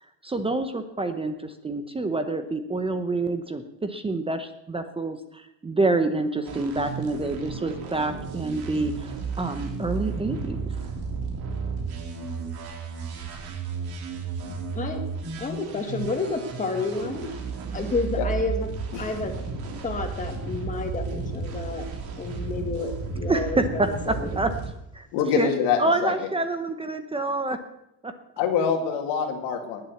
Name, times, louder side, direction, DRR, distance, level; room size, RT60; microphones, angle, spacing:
voice 1, 0.2-10.7 23.3-24.5 24.9-25.1 25.4-25.5 25.8-27.6 28.0-28.1, right 2 dB, 15° right, 8 dB, 0.8 m, -27 dB
sound 1, 6.4-24.7, right 5 dB, 60° right, 3.2 m, -33 dB
voice 2, 15.4-17.3 17.7-18.7 19.0-19.3 19.8-21.9 22.2-24.3, left 3 dB, 20° left, 3 dB, 2.1 m, -30 dB
voice 3, 25.1-26.1 28.4-29.8, left 7 dB, 85° left, 3 dB, 2.9 m, -25 dB
19.5 x 7.5 x 7.2 m, 0.82 s
cardioid pair, 140°, 42 cm